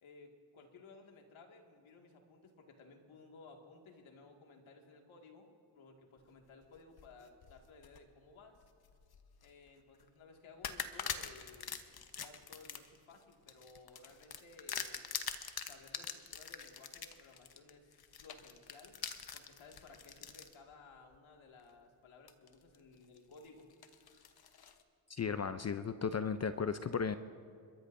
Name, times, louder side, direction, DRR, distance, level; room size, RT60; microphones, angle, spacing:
voice 1, 0.0-5.5 5.7-8.6 9.4-11.7 12.2-15.0 15.6-19.0 19.3-23.7, left 3 dB, 70° left, 2 dB, 2.2 m, -58 dB
sound 1, 6.8-8.0 8.6-9.5 9.9-10.1 10.6-20.5 21.1-21.2 22.3-22.8 23.2-24.8, left 7 dB, 45° left, 1.1 m, -44 dB
voice 2, 25.1-27.2, left 6 dB, 30° left, 11 dB, 0.5 m, -35 dB
28.0 x 13.5 x 2.7 m, 2.2 s
supercardioid pair, 60°, 50 cm